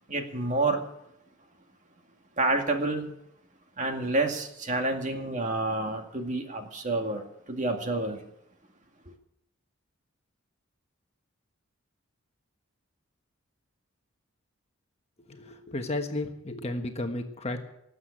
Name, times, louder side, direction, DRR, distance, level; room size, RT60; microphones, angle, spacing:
voice 1, 0.1-0.8 2.4-3.1 3.8-8.2, right 2 dB, 35° right, 4 dB, 2.1 m, -29 dB
voice 2, 15.3-17.6, left 2 dB, 30° left, 5 dB, 1.3 m, -33 dB
19.0 x 7.9 x 8.7 m, 0.77 s
head